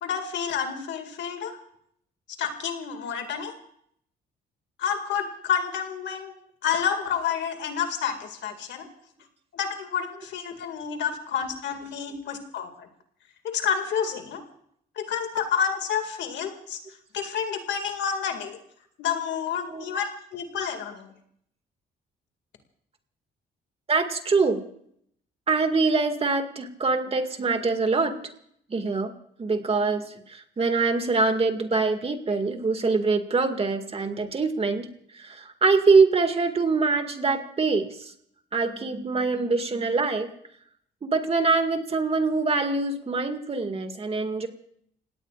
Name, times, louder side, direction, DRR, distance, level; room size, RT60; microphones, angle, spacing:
voice 1, 0.0-1.6 2.4-3.5 4.8-6.3 6.6-8.9 9.5-12.9 13.4-14.4 15.0-16.8 17.1-18.6 19.0-21.1, left 7 dB, 80° left, 6 dB, 2.2 m, -29 dB
voice 2, 19.7-20.0 23.9-24.7 25.5-28.1 28.7-29.1 29.4-30.0 30.3-34.9 35.1-38.1 38.5-40.3 41.0-44.5, right 4 dB, 35° right, 6 dB, 2.0 m, -24 dB
30.0 x 17.5 x 2.5 m, 0.68 s
cardioid pair, 100°, 18 cm